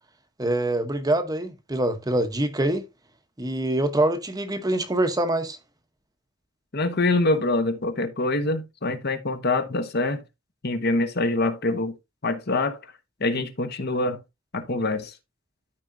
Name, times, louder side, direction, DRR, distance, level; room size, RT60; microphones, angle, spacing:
voice 1, 0.4-2.9 3.4-5.6, right 1 dB, 20° right, 0.9 m, -24 dB
voice 2, 6.7-10.2 10.6-11.9 12.2-12.8 13.2-14.2 14.5-15.1, left 2 dB, 50° left, 1.1 m, -25 dB
13.0 x 4.8 x 2.6 m
head